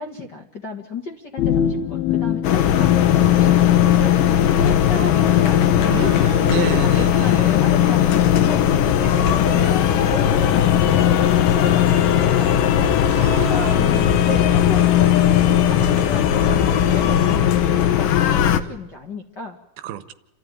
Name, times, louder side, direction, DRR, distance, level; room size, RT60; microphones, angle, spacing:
voice 1, 0.0-4.2 4.5-6.2 6.7-12.9 13.3-19.6, left 2 dB, 40° left, 2 dB, 1.7 m, -33 dB
sound 1, 1.4-4.2, left 9 dB, 85° left, 2.9 m, -24 dB
sound 2, 2.4-18.6, left 10 dB, 70° left, 2.5 m, -17 dB
voice 2, 5.9-7.5 13.1-14.2 15.8-16.3 19.8-20.1, right 12 dB, 85° right, 12 dB, 3.0 m, -30 dB
29.0 x 13.5 x 9.5 m, 0.95 s
omnidirectional pair, 4.2 m